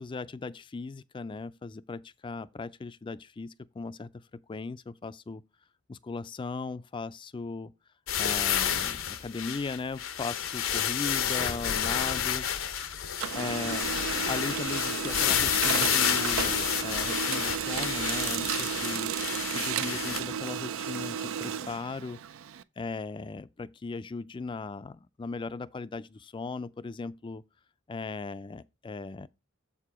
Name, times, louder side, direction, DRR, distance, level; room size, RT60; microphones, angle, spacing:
voice 1, 0.0-4.1 4.5-5.4 5.9-7.7 8.2-12.5 13.3-13.8 14.3-19.1 19.5-22.2 22.8-27.4 27.9-29.3, left 4 dB, 25° left, 0.3 m, -37 dB
sound 1, 8.1-20.2, left 9 dB, 80° left, 0.7 m, -30 dB
Printer, 11.5-12.8 13.1-22.6, right 8 dB, 85° right, 0.4 m, -33 dB
7.6 x 4.7 x 4.9 m
head